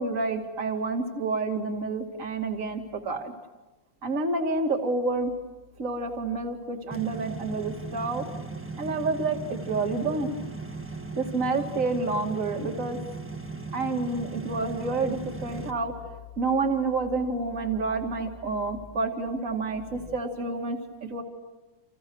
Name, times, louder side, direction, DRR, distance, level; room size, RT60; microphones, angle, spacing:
voice 1, 0.0-3.3 4.0-5.3 5.8-8.2 8.8-10.3 11.2-13.0 13.7-15.9 16.4-21.2, right 3 dB, 40° right, 4 dB, 2.6 m, -29 dB
sound 1, 6.9-15.7, right 3 dB, 5° right, 1.4 m, -38 dB
30.0 x 28.5 x 6.3 m, 1.1 s
omnidirectional pair, 2.1 m